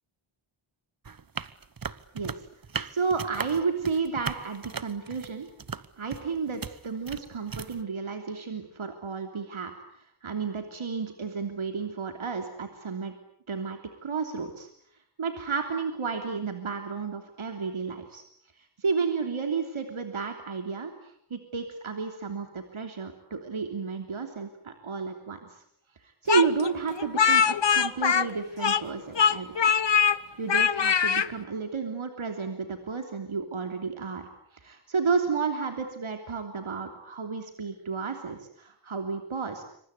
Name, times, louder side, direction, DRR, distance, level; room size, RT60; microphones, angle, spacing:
sound 1, 1.1-7.8, right 5 dB, 45° right, 1.2 m, -37 dB
voice 1, 2.1-2.4 2.8-5.5 6.0-13.1 13.5-14.7 15.2-18.2 18.6-25.5 26.2-29.7 30.4-34.2 34.5-39.6, right 5 dB, 70° right, 5 dB, 3.3 m, -32 dB
Speech, 26.3-28.9 29.2-30.2 30.5-31.3, left 7 dB, 55° left, 1.2 m, -22 dB
27.0 x 25.5 x 8.3 m, 0.65 s
wide cardioid pair, 100°, 50 cm